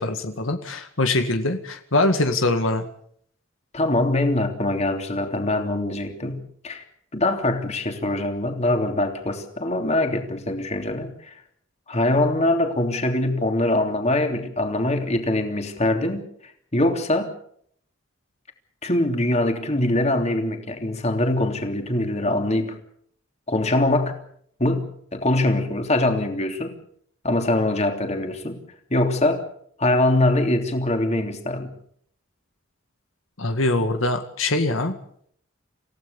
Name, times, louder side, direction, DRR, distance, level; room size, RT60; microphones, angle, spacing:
voice 1, 0.0-2.9 33.4-34.9, left 2 dB, 85° left, 6 dB, 2.1 m, -23 dB
voice 2, 3.7-6.8 7.1-11.3 11.9-17.3 18.8-22.7 23.5-24.2 24.6-26.7 27.2-28.6 28.9-29.4 29.8-31.7, left 1 dB, 35° left, 4 dB, 3.2 m, -23 dB
27.5 x 16.0 x 7.1 m, 0.66 s
head